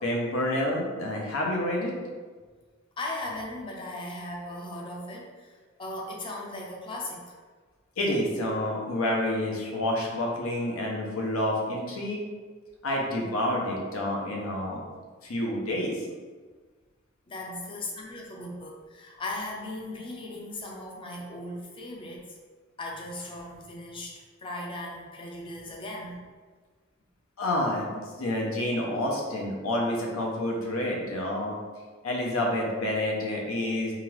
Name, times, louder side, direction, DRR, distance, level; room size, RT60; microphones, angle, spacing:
voice 1, 0.0-1.9 8.0-12.2 12.8-14.8 15.2-16.0 27.4-31.6 32.0-33.9, left 1 dB, 90° left, -1 dB, 0.6 m, -28 dB
voice 2, 3.0-5.5 5.8-7.4 17.3-22.3 22.8-26.2, left 1 dB, 25° left, -1 dB, 0.5 m, -37 dB
2.8 x 2.4 x 3.1 m, 1.4 s
head